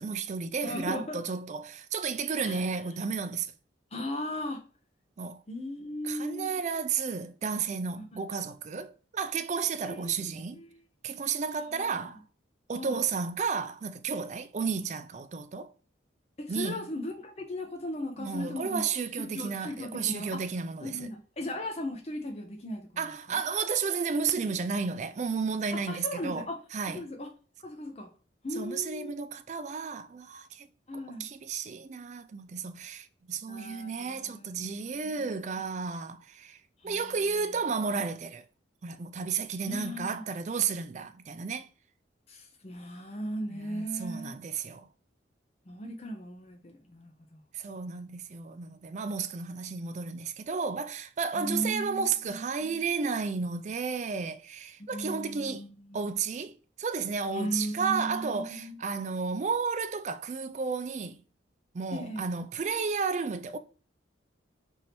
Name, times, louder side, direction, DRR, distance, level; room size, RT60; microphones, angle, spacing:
voice 1, 0.0-3.5 5.2-5.4 6.0-10.6 11.0-12.2 12.7-15.7 16.5-16.8 18.2-21.1 23.0-26.5 26.7-27.1 28.5-30.7 31.2-38.4 38.8-41.7 43.5-44.9 47.5-55.6 55.9-61.2 61.7-63.6, right 5 dB, 40° right, 0.3 m, -32 dB
voice 2, 0.6-1.2 2.4-2.7 3.9-4.6 5.5-6.6 8.0-8.1 9.9-10.1 10.5-10.8 11.7-12.1 12.7-13.0 14.6-14.8 16.4-18.9 19.3-20.4 20.8-23.4 25.7-26.6 26.9-27.3 27.6-28.1 28.4-29.2 30.9-31.3 33.5-35.1 36.8-37.5 39.6-40.2 42.3-44.3 45.7-47.4 51.3-52.8 54.8-56.0 57.3-58.8 61.9-62.2, equal, 35° left, 0.6 m, -37 dB
3.4 x 2.7 x 4.2 m
head